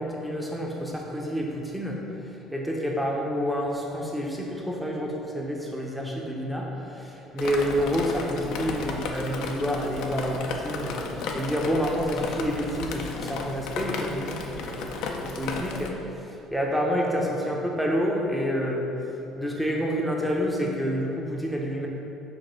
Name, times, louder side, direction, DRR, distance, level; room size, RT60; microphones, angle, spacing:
voice 1, 0.0-18.9 19.3-21.9, equal, 5° right, -2 dB, 0.9 m, -29 dB
Drip, 7.4-15.9, left 4 dB, 75° left, 0.5 m, -34 dB
5.3 x 3.4 x 5.3 m, 2.9 s
cardioid pair, 110°, 0 cm